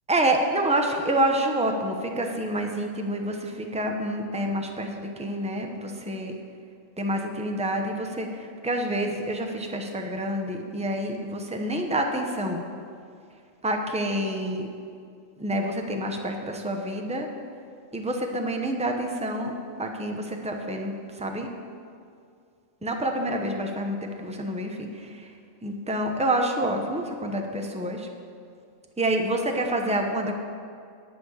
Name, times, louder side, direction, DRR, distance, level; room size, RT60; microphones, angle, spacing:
voice 1, 0.1-6.3 7.0-12.6 13.6-14.7 15.4-17.3 17.9-19.5 19.8-21.5 22.8-25.3 25.6-28.1 29.0-30.3, right 1 dB, 5° right, 3 dB, 0.7 m, -28 dB
11.0 x 5.6 x 8.1 m, 2.3 s
omnidirectional pair, 1.4 m